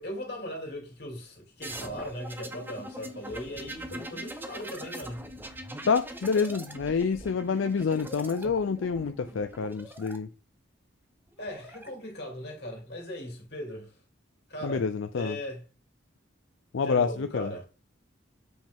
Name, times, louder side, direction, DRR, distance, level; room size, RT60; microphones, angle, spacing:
voice 1, 0.0-5.3 11.4-13.9 14.5-14.9 15.1-15.6 16.8-17.7, left 1 dB, 55° left, 2.9 m, -38 dB
sound 1, 1.6-10.2 11.3-11.9, right 1 dB, 10° right, 0.8 m, -42 dB
voice 2, 5.9-10.3 14.6-15.4 16.7-17.6, left 5 dB, 80° left, 0.4 m, -28 dB
7.9 x 5.3 x 3.5 m
head